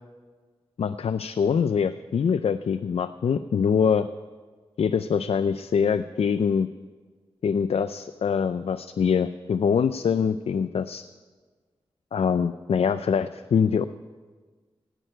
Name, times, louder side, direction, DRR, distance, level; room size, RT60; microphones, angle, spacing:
voice 1, 0.8-4.1 4.8-6.7 7.4-11.0 12.1-13.8, left 6 dB, 80° left, 12 dB, 0.4 m, -24 dB
17.0 x 6.6 x 9.0 m, 1.5 s
wide cardioid pair, 90°, 10 cm